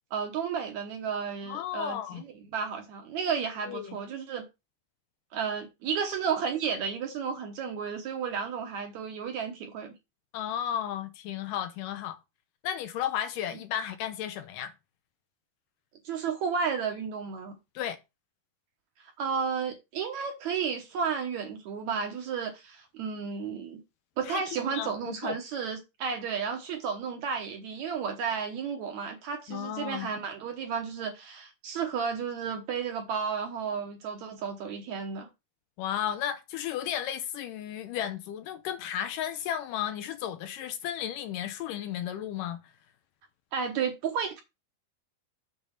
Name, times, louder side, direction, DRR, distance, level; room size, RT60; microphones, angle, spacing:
voice 1, 0.1-4.4 5.3-9.9 16.1-17.5 19.2-23.8 24.2-35.3 43.5-44.4, right 6 dB, 65° right, 2.0 m, -32 dB
voice 2, 1.4-2.2 3.6-4.0 10.3-12.2 12.6-14.7 17.8-18.0 24.3-25.4 29.5-30.1 35.8-42.6, left 10 dB, 80° left, 2.1 m, -34 dB
7.2 x 3.8 x 5.6 m
omnidirectional pair, 4.1 m